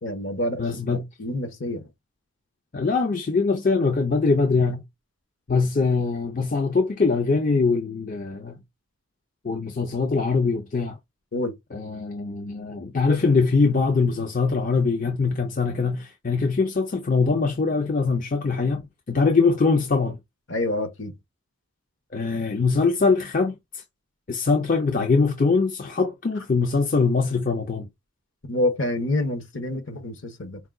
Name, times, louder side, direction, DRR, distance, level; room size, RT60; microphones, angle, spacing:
voice 1, 0.0-0.6 0.9-1.8 11.3-11.5 20.5-21.1 28.5-30.6, left 1 dB, 60° left, 1.0 m, -27 dB
voice 2, 0.6-1.0 2.7-4.8 5.5-8.6 9.4-11.0 11.7-18.8 19.1-20.2 22.1-23.8 24.3-27.9, left 4 dB, 40° left, 0.5 m, -22 dB
4.6 x 2.3 x 3.7 m
head